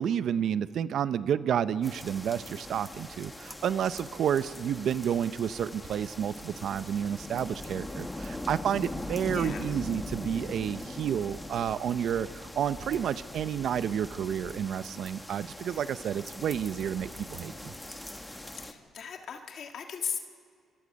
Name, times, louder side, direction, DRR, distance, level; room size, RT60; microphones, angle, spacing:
voice 1, 0.0-17.7, right 9 dB, 70° right, 15 dB, 0.6 m, -30 dB
sound 1, 1.8-18.7, left 1 dB, 10° left, 1.5 m, -41 dB
voice 2, 9.3-9.7 18.6-20.2, left 7 dB, 65° left, 4 dB, 1.6 m, -37 dB
26.0 x 24.0 x 5.3 m, 2.2 s
cardioid pair, 90°, 0 cm